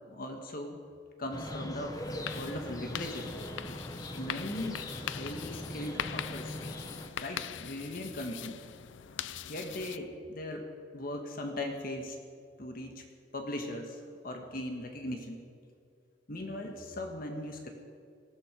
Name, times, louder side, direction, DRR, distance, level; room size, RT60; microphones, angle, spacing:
voice 1, 0.1-0.8 1.2-2.0 2.3-3.3 4.2-6.6 7.2-8.6 9.5-10.7 10.9-12.2 12.6-13.0 13.3-15.5 16.3-17.7, left 1 dB, 50° left, 3 dB, 1.5 m, -39 dB
sound 1, 1.3-7.1, left 1 dB, 20° left, 1.1 m, -41 dB
sound 2, 1.9-10.0, left 9 dB, 75° left, 0.5 m, -42 dB
19.0 x 14.0 x 5.0 m, 2.3 s
head